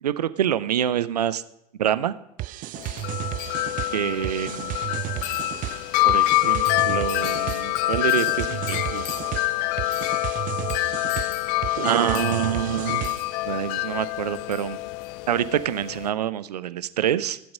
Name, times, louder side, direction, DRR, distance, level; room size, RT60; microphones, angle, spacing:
voice 1, 0.0-1.4 1.8-2.1 3.9-4.8 6.0-9.3 11.8-14.8 15.3-17.5, right 10 dB, 85° right, 15 dB, 0.6 m, -26 dB
sound 1, 2.4-13.4, right 16 dB, 45° right, 0.5 m, -33 dB
Wind chime, 2.8-16.1, left 18 dB, 55° left, 0.5 m, -26 dB
16.0 x 7.8 x 5.4 m, 0.85 s
hypercardioid pair, 75°, 20 cm